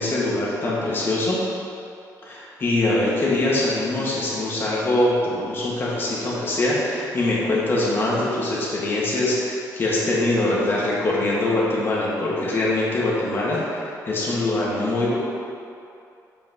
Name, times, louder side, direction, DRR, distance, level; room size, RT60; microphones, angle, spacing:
voice 1, 0.0-1.4 2.2-15.2, left 2 dB, 30° left, -6 dB, 1.6 m, -23 dB
5.5 x 4.6 x 6.1 m, 2.6 s
cardioid pair, 155°, 7 cm